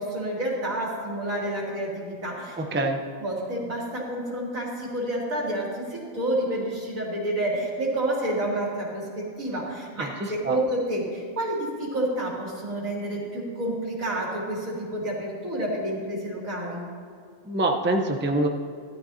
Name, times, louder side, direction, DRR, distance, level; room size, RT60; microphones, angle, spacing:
voice 1, 0.0-2.6 3.2-16.8, right 1 dB, 90° right, -4 dB, 3.0 m, -29 dB
voice 2, 2.6-3.0 10.0-10.6 17.4-18.5, right 2 dB, 10° right, 3 dB, 0.5 m, -25 dB
15.0 x 12.0 x 2.8 m, 2.3 s
omnidirectional pair, 1.4 m